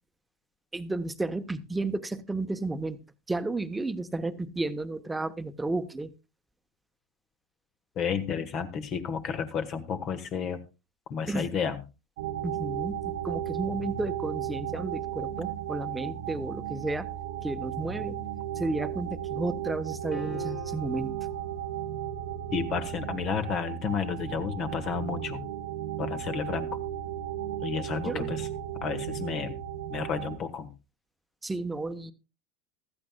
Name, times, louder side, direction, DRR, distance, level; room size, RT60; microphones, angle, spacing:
voice 1, 0.7-3.0 3.3-6.1 11.3-11.5 12.4-17.1 17.4-18.2 18.5-21.1 28.0-28.3 31.4-32.1, right 2 dB, 10° right, 10 dB, 1.1 m, -32 dB
voice 2, 8.0-10.6 11.1-11.8 22.5-25.4 26.0-26.8 27.6-28.5 28.8-29.6 29.9-30.7, left 6 dB, 45° left, 10 dB, 1.6 m, -31 dB
sound 1, 12.2-30.4, right 11 dB, 70° right, 0.8 m, -35 dB
sound 2, 20.1-21.2, left 7 dB, 20° left, 3.1 m, -43 dB
15.5 x 13.0 x 2.3 m, 0.27 s
hypercardioid pair, 80°, 0 cm